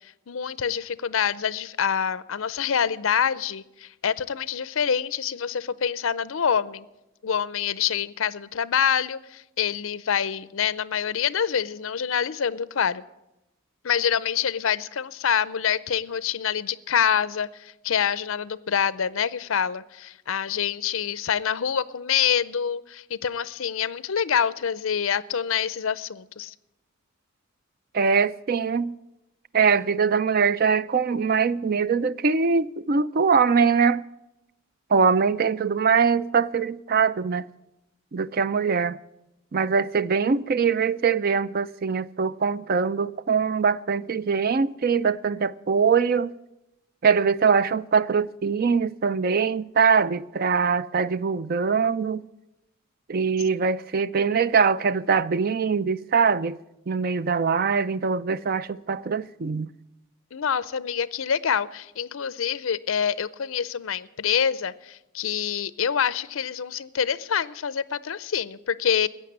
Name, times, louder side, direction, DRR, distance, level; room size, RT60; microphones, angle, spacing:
voice 1, 0.3-6.9 7.2-13.0 13.8-26.5 60.3-69.1, left 8 dB, 70° left, 0.6 m, -26 dB
voice 2, 27.9-28.9 29.5-34.0 34.9-37.5 38.1-39.0 39.5-46.3 47.0-52.2 53.1-56.6 56.9-59.7, right 5 dB, 45° right, 0.4 m, -22 dB
14.5 x 8.6 x 9.5 m
head